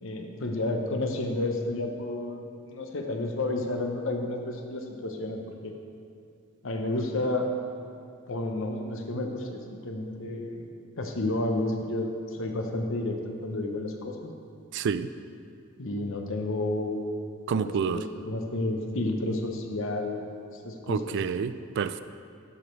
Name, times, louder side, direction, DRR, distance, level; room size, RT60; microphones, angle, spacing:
voice 1, 0.0-2.4 2.7-5.7 6.6-7.5 8.3-10.7 11.0-14.3 15.8-20.3 20.6-21.2, left 2 dB, 70° left, 3 dB, 0.9 m, -31 dB
voice 2, 14.7-15.1 17.5-18.0 20.9-22.0, right 6 dB, 60° right, 12 dB, 0.3 m, -28 dB
12.0 x 5.2 x 4.6 m, 2.5 s
head